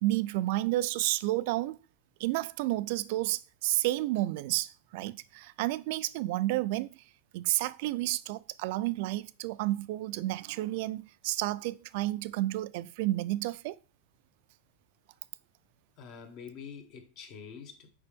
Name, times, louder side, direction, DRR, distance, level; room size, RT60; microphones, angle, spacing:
voice 1, 0.0-1.8 2.2-6.9 7.3-13.8, right 17 dB, 60° right, 0.4 m, -31 dB
voice 2, 16.0-17.9, left 6 dB, 50° left, 1.5 m, -46 dB
6.8 x 5.1 x 3.5 m
supercardioid pair, 130°, 0 cm